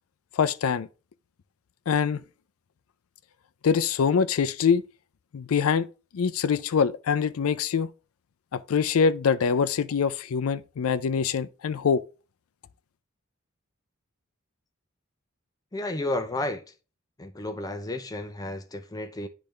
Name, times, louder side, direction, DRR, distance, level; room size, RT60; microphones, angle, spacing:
voice 1, 0.4-0.9 1.9-2.2 3.6-4.8 5.3-5.9 6.1-7.9 8.5-12.0, left 6 dB, 85° left, 0.4 m, -24 dB
voice 2, 15.7-16.6 17.2-19.3, left 2 dB, 20° left, 0.5 m, -32 dB
10.0 x 3.4 x 3.2 m
head